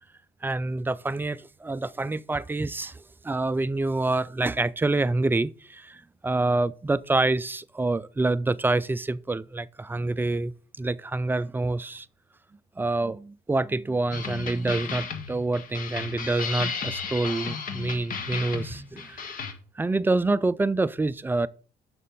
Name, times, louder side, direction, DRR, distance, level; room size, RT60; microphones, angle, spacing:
voice 1, 0.4-10.5 10.8-12.1 12.8-19.4 19.8-21.5, right 2 dB, 10° right, 0.3 m, -27 dB
sound 1, 14.1-19.5, left 6 dB, 55° left, 1.5 m, -34 dB
6.6 x 6.2 x 5.3 m
cardioid pair, 110°, 17 cm